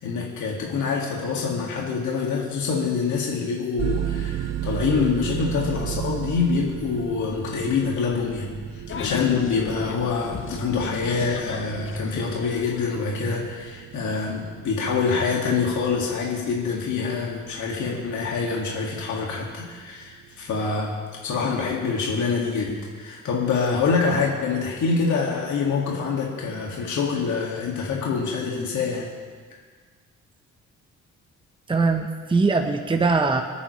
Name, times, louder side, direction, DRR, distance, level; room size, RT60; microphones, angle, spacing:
voice 1, 0.0-21.0 21.2-29.1, left 5 dB, 70° left, -2 dB, 2.3 m, -25 dB
sound 1, 3.8-22.4, right 11 dB, 60° right, 0.8 m, -36 dB
sound 2, 8.9-13.4, left 7 dB, 45° left, 0.7 m, -36 dB
voice 2, 31.7-33.4, right 4 dB, 15° right, 4 dB, 1.0 m, -21 dB
25.5 x 9.6 x 3.3 m, 1.6 s
cardioid pair, 90°, 30 cm